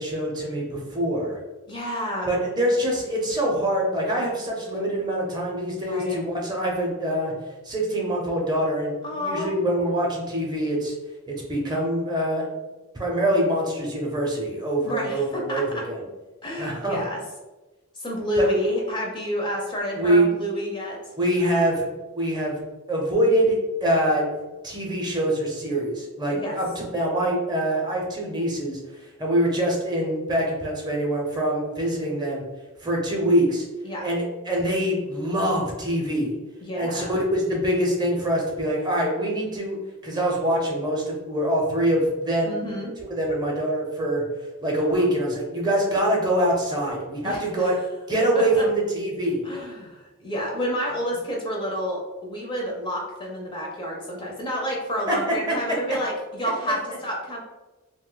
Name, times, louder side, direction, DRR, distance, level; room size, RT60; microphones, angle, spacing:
voice 1, 0.0-1.4 2.2-7.3 7.6-10.9 11.3-12.5 12.9-16.0 16.6-17.0 18.4-18.5 19.9-20.3 21.2-21.9 22.2-22.6 22.9-23.5 23.8-24.3 24.6-26.7 26.9-28.8 29.2-32.4 32.8-33.6 34.0-36.4 36.8-39.8 40.0-42.6 43.0-44.2 44.6-47.8 48.1-49.4 55.1-55.2, right 1 dB, 20° right, -2 dB, 0.6 m, -24 dB
voice 2, 1.7-2.4 5.9-6.2 9.0-9.5 14.8-15.8 16.4-17.2 17.9-21.0 26.3-26.6 33.8-34.1 36.6-37.2 42.4-42.9 47.2-47.7 48.4-48.6 49.4-57.4, equal, 20° left, -1 dB, 0.5 m, -29 dB
2.5 x 2.1 x 3.7 m, 1.1 s
head